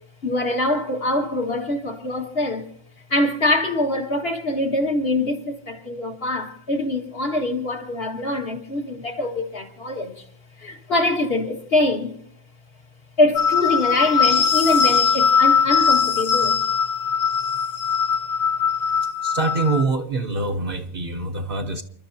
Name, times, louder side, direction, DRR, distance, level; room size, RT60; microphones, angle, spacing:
voice 1, 0.2-2.7 3.1-10.1 10.6-12.1 13.2-16.6, left 2 dB, 50° left, 1.9 m, -24 dB
sound 1, 13.4-19.9, left 6 dB, 85° left, 1.4 m, -20 dB
voice 2, 19.2-21.8, right 3 dB, 45° right, 1.0 m, -24 dB
29.5 x 12.5 x 2.7 m
omnidirectional pair, 1.4 m